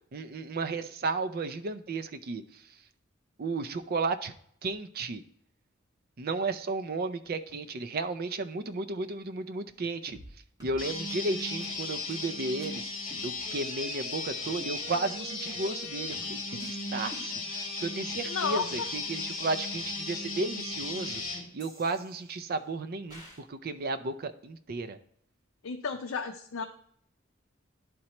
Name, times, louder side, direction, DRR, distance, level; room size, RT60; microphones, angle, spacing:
voice 1, 0.1-2.4 3.4-4.3 4.6-5.2 6.2-10.2 10.6-12.8 13.2-21.2 21.5-25.0, right 3 dB, 50° right, 9 dB, 0.5 m, -33 dB
sound 1, 10.1-10.3 10.6-10.8 11.1-11.2 11.6-11.7 12.1-12.3 12.6-12.7 13.1-13.7 14.1-14.2 14.6-15.2 15.6-15.8 16.1-18.7 19.1-20.0 20.6-20.7 21.6-22.6 23.1-23.4, equal, 20° right, 1.8 m, -52 dB
sound 2, 10.8-21.4, left 3 dB, 45° left, 1.7 m, -36 dB
voice 2, 18.3-18.9 25.6-26.6, left 5 dB, 80° left, 4 dB, 0.5 m, -32 dB
11.0 x 4.3 x 2.9 m, 0.65 s
head